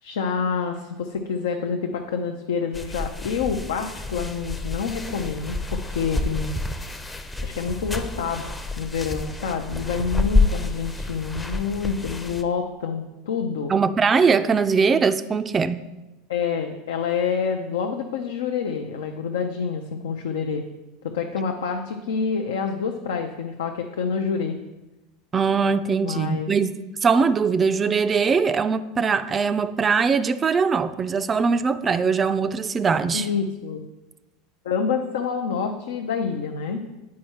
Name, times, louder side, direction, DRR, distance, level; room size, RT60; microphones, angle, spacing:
voice 1, 0.0-6.5 7.4-8.5 8.8-13.7 16.3-20.7 21.0-24.6 26.0-26.5 33.1-33.8 34.6-36.8, left 6 dB, 75° left, 4 dB, 0.5 m, -27 dB
sound 1, 2.7-12.4, left 2 dB, 15° left, 0.6 m, -28 dB
voice 2, 13.7-15.8 25.3-26.7 27.0-33.3, right 5 dB, 25° right, 12 dB, 0.3 m, -21 dB
8.5 x 4.7 x 4.3 m, 1.1 s
hypercardioid pair, 80°, 0 cm